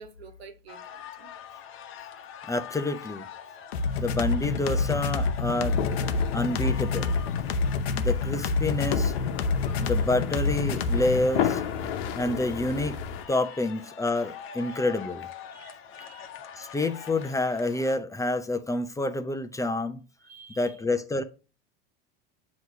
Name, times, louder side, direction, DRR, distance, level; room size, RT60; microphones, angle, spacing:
voice 1, 0.0-1.3 9.6-9.7 14.7-14.8 15.5-16.3 20.2-20.8, right 4 dB, 90° right, 1.3 m, -49 dB
sound 1, 0.7-18.0, left 8 dB, 45° left, 1.1 m, -44 dB
voice 2, 2.5-3.3 4.0-5.8 6.3-7.2 7.9-9.1 9.8-11.6 12.1-13.0 13.3-15.3 16.6-20.0 20.6-21.2, left 2 dB, 10° left, 0.7 m, -28 dB
sound 2, 3.7-11.3, left 4 dB, 90° left, 0.8 m, -27 dB
sound 3, 5.6-13.2, left 8 dB, 70° left, 1.1 m, -33 dB
7.9 x 3.2 x 6.0 m
hypercardioid pair, 95°, 30 cm